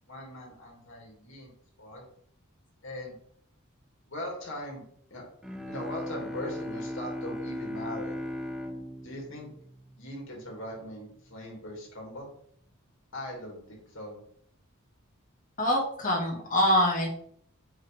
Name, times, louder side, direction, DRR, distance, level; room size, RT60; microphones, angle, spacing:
voice 1, 0.1-1.5 1.8-2.1 2.8-3.2 4.1-5.2 5.7-8.2 9.0-9.5 10.0-12.3 13.1-14.2, left 1 dB, 60° left, -1 dB, 2.8 m, -40 dB
Bowed string instrument, 5.4-10.6, left 1 dB, 5° right, 0.7 m, -38 dB
voice 2, 15.6-17.1, equal, 40° left, -1 dB, 1.9 m, -24 dB
6.4 x 5.4 x 3.6 m, 0.64 s
head